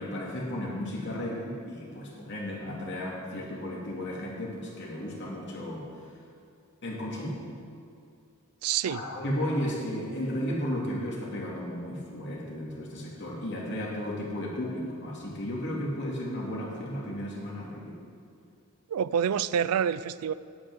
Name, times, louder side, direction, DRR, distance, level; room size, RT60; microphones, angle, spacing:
voice 1, 0.0-5.9 6.8-7.4 8.8-18.0, left 1 dB, 55° left, -3 dB, 2.5 m, -34 dB
voice 2, 8.6-9.0 18.9-20.3, right 8 dB, 75° right, 17 dB, 0.4 m, -27 dB
8.7 x 8.5 x 8.0 m, 2.4 s
head